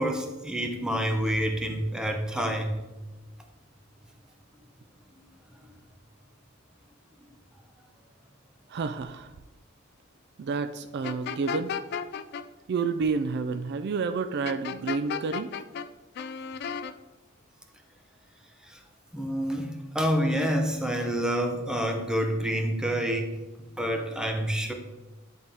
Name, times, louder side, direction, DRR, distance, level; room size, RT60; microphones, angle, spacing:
voice 1, 0.0-2.8 18.6-18.8 19.1-23.4 23.8-24.7, equal, 5° right, 4 dB, 0.7 m, -28 dB
voice 2, 8.7-9.3 10.4-11.7 12.7-15.5, right 4 dB, 55° right, 10 dB, 0.3 m, -29 dB
sound 1, 11.0-12.4 14.4-15.9 16.1-16.9, left 7 dB, 50° left, 0.3 m, -33 dB
10.5 x 3.5 x 3.5 m, 1.1 s
head